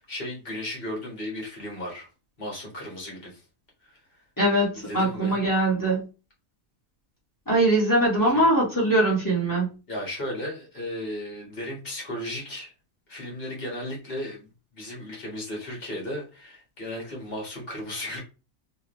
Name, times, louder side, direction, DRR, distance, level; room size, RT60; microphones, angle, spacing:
voice 1, 0.0-2.1 2.4-3.4 3.8-4.0 4.8-5.4 8.2-8.5 9.9-12.7 13.1-18.2, left 1 dB, 45° left, -2 dB, 1.9 m, -35 dB
voice 2, 4.4-6.1 7.5-9.7, right 1 dB, 15° left, -5 dB, 1.9 m, -22 dB
3.7 x 3.4 x 3.1 m, 0.31 s
omnidirectional pair, 1.4 m